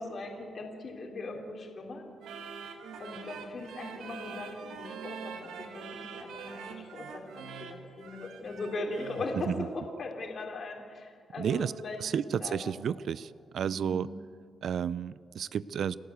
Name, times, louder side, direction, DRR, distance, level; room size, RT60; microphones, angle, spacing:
voice 1, 0.0-2.0 3.0-12.8 13.6-14.2, left 2 dB, 50° left, 1 dB, 3.6 m, -39 dB
sound 1, 2.2-9.4, right 6 dB, 90° right, 1.9 m, -44 dB
voice 2, 11.4-11.7 12.0-14.1 14.6-16.0, right 8 dB, 65° right, 18 dB, 0.5 m, -31 dB
29.5 x 11.5 x 8.2 m, 2.2 s
cardioid pair, 100°, 0 cm